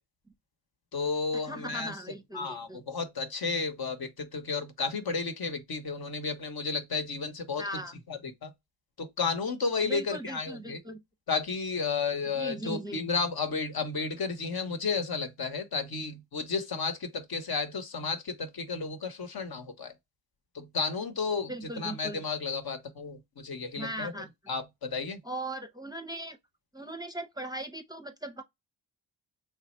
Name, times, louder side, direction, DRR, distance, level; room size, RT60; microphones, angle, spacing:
voice 1, 0.9-2.0 2.3-8.5 9.0-10.8 11.3-19.9 20.5-25.2, left 4 dB, 55° left, 1.0 m, -33 dB
voice 2, 1.5-2.8 7.6-7.9 9.8-11.0 12.4-13.0 21.5-22.2 23.8-24.3 25.2-26.4 26.7-28.4, right 1 dB, 10° right, 0.6 m, -38 dB
3.2 x 2.3 x 4.2 m
cardioid pair, 60°, 45 cm